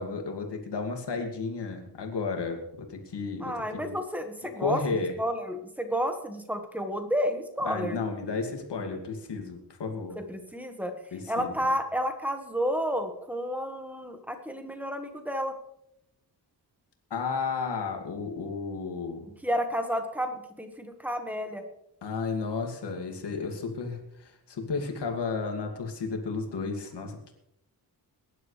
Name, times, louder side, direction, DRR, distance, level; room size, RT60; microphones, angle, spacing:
voice 1, 0.0-3.9 4.6-5.1 7.6-10.2 11.1-11.7 17.1-19.3 22.0-27.3, left 4 dB, 90° left, 3 dB, 2.4 m, -33 dB
voice 2, 3.4-8.0 10.1-10.9 11.3-15.5 19.4-21.6, equal, 5° right, 6 dB, 1.6 m, -31 dB
22.0 x 11.0 x 3.3 m, 0.79 s
wide cardioid pair, 140°, 40 cm